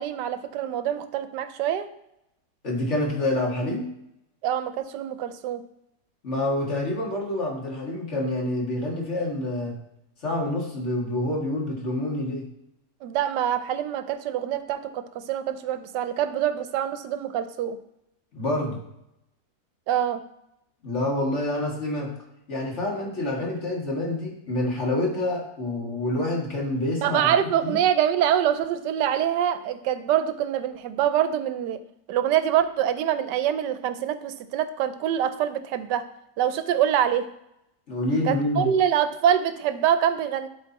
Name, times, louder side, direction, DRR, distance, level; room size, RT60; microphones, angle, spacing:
voice 1, 0.0-1.9 4.4-5.6 13.0-17.8 19.9-20.2 27.0-31.8 32.1-36.1 36.4-37.3 38.3-40.5, right 10 dB, 85° right, 11 dB, 1.2 m, -25 dB
voice 2, 2.6-3.9 6.2-9.8 10.2-12.5 18.3-18.8 20.8-22.1 22.5-27.3 27.6-27.8 37.9-38.7, left 1 dB, 45° left, -1 dB, 2.0 m, -27 dB
11.5 x 4.2 x 4.1 m, 0.81 s
omnidirectional pair, 1.8 m